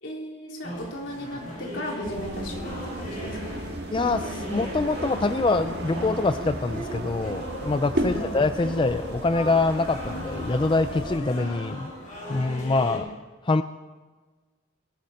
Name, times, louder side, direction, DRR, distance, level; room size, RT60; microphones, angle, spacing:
voice 1, 0.0-3.6 8.0-8.3, left 1 dB, 70° left, -1 dB, 3.8 m, -36 dB
sound 1, 0.6-13.0, equal, 40° left, 5.9 m, -37 dB
sound 2, 2.0-11.2, right 1 dB, 55° right, 1.8 m, -35 dB
voice 2, 3.9-11.9 12.3-13.1 13.4-13.6, left 3 dB, 25° left, 10 dB, 0.4 m, -25 dB
22.0 x 14.5 x 4.3 m, 1.4 s
head